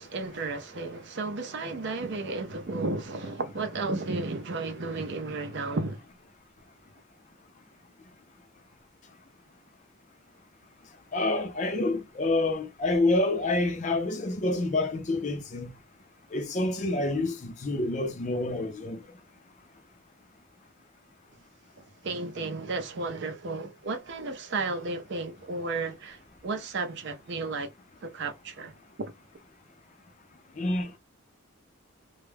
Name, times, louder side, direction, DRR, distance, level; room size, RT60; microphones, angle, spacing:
voice 1, 0.0-6.0 22.0-27.7 28.0-28.7 29.0-29.1, right 3 dB, 55° right, 0.5 m, -33 dB
voice 2, 11.1-15.7 16.3-19.0 30.6-31.0, left 2 dB, 35° left, 0.4 m, -27 dB
2.3 x 2.1 x 3.2 m
head